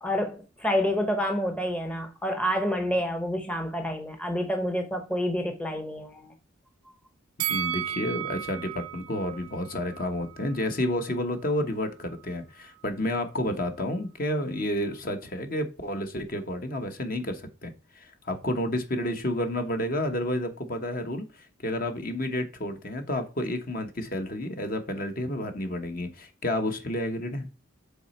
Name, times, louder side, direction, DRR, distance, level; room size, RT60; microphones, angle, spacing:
voice 1, 0.0-6.3, equal, 5° left, 0.7 m, -28 dB
Bell, 7.4-10.6 10.9-11.1, right 11 dB, 85° right, 0.4 m, -34 dB
voice 2, 7.5-27.5, left 1 dB, 45° left, 1.0 m, -30 dB
7.1 x 4.1 x 4.3 m
head